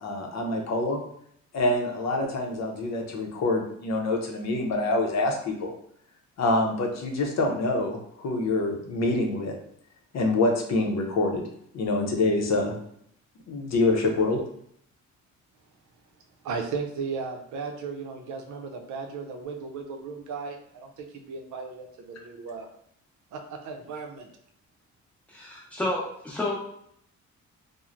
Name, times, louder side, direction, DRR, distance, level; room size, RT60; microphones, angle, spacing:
voice 1, 0.0-1.0 1.5-5.7 6.4-9.5 10.1-11.4 11.7-12.7 13.5-14.4, left 2 dB, 60° left, 1 dB, 0.6 m, -26 dB
voice 2, 16.4-22.7 23.3-24.3, right 5 dB, 70° right, 3 dB, 0.6 m, -36 dB
voice 3, 25.3-26.5, left 1 dB, 5° left, -4 dB, 0.9 m, -30 dB
3.1 x 2.1 x 2.4 m, 0.69 s
cardioid pair, 90°, 30 cm